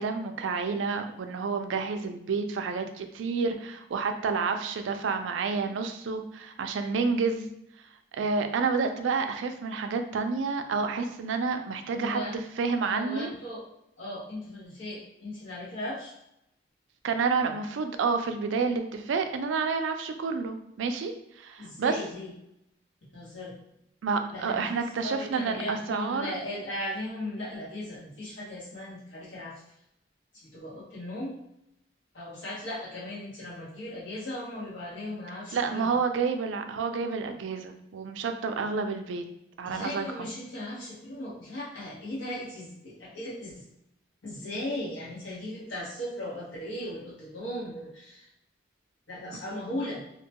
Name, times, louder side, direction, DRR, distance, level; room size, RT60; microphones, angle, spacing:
voice 1, 0.0-7.5 8.1-13.3 17.0-22.0 24.0-26.4 35.5-39.2 39.6-40.3, right 5 dB, 90° right, 7 dB, 0.4 m, -29 dB
voice 2, 11.9-12.3 12.8-13.6 14.0-16.1 21.6-22.3 23.1-23.6 24.3-29.6 30.4-31.4 32.1-35.9 39.6-43.6 44.2-48.3 49.1-50.0, left 1 dB, 85° left, -7 dB, 1.2 m, -37 dB
2.8 x 2.2 x 2.8 m, 0.81 s
head